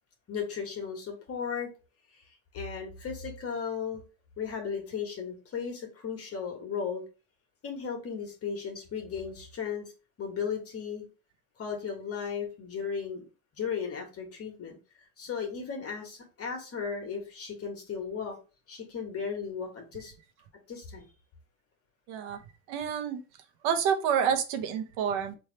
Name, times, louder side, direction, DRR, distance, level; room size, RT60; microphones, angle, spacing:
voice 1, 0.3-1.7 2.5-4.0 4.4-7.0 7.6-9.8 10.2-11.0 11.6-13.2 13.6-14.8 15.2-18.4 18.7-20.1 20.7-21.0, left 6 dB, 35° left, 2 dB, 1.3 m, -35 dB
voice 2, 22.1-22.4 22.7-23.2 23.6-25.4, right 7 dB, 65° right, 7 dB, 0.9 m, -28 dB
3.3 x 2.7 x 4.3 m, 0.33 s
supercardioid pair, 95°, 43 cm